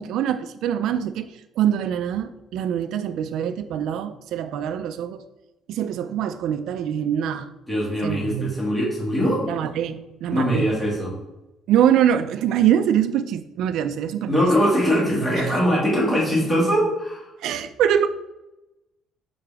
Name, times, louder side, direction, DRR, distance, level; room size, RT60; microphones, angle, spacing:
voice 1, 0.0-5.2 5.7-7.5 8.0-8.5 9.5-10.7 11.7-14.3 15.4-15.5 17.4-18.1, right 9 dB, 70° right, 9 dB, 0.3 m, -24 dB
voice 2, 7.7-9.4 10.3-11.1 14.3-17.2, equal, 10° left, -5 dB, 2.0 m, -21 dB
5.6 x 5.0 x 3.5 m, 0.98 s
cardioid pair, 150°, 0 cm